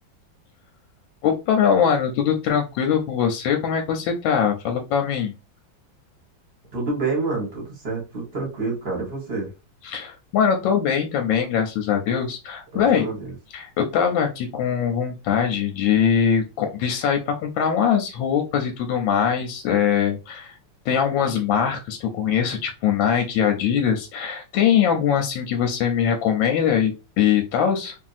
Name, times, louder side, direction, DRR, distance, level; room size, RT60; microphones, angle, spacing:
voice 1, 1.2-5.3 9.8-13.1 13.5-20.6 20.8-28.0, left 8 dB, 85° left, 4 dB, 1.3 m, -22 dB
voice 2, 6.7-9.5 12.7-13.3, right 3 dB, 35° right, 0 dB, 1.3 m, -28 dB
2.9 x 2.6 x 2.4 m, 0.29 s
omnidirectional pair, 2.0 m